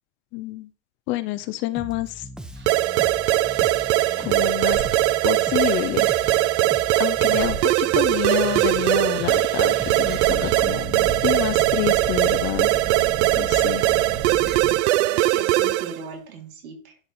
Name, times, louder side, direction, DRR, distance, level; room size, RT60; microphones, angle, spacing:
voice 1, 0.3-0.7 1.1-2.3 4.2-4.9 5.2-6.1 7.0-12.7 13.4-13.8, left 16 dB, 30° left, 14 dB, 0.4 m, -28 dB
Bass guitar, 1.8-11.6, equal, ahead, 0.7 m, -40 dB
sound 1, 2.6-7.8 8.1-14.8, right 5 dB, 25° right, 1.2 m, -36 dB
sound 2, 2.7-16.0, right 16 dB, 55° right, 0.5 m, -21 dB
voice 2, 13.7-14.3 15.0-17.0, right 5 dB, 80° right, 1 dB, 3.5 m, -38 dB
11.0 x 5.3 x 4.1 m, 0.39 s
hypercardioid pair, 115°, 42 cm